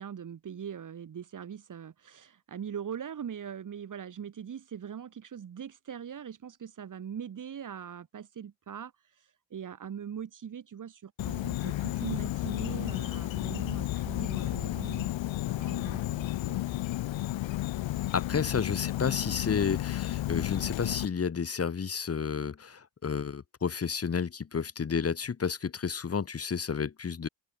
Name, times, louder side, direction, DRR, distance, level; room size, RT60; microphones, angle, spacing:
voice 1, 0.0-8.9 9.5-15.1 15.6-16.6 18.3-18.4, right 8 dB, 40° right, 3.4 m, -41 dB
Insect, 11.2-21.1, left 15 dB, 80° left, 3.9 m, -32 dB
voice 2, 18.1-27.3, left 6 dB, 30° left, 2.7 m, -31 dB
open air
cardioid pair, 120°, 46 cm